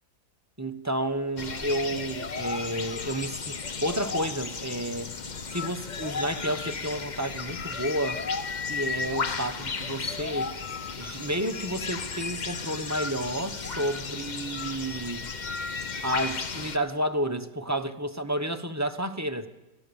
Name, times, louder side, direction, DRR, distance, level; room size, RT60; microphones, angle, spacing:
voice 1, 0.6-5.1 5.5-8.2 8.7-10.5 11.0-15.3 16.0-19.5, right 1 dB, 15° right, 7 dB, 1.0 m, -31 dB
sound 1, 1.4-16.8, left 4 dB, 35° left, 1.0 m, -34 dB
25.0 x 17.0 x 7.1 m, 1.0 s
omnidirectional pair, 1.5 m